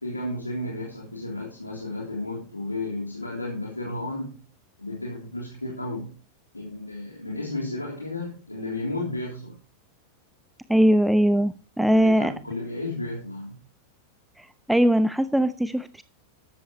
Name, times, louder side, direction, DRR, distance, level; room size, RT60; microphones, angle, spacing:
voice 1, 0.0-4.3 4.8-6.1 6.5-9.6 11.8-13.5, left 2 dB, 85° left, -2 dB, 3.4 m, -33 dB
voice 2, 10.7-12.3 14.4-16.0, equal, 5° right, 13 dB, 0.6 m, -21 dB
13.5 x 12.5 x 3.1 m, 0.35 s
figure-of-eight pair, 90°, 0 cm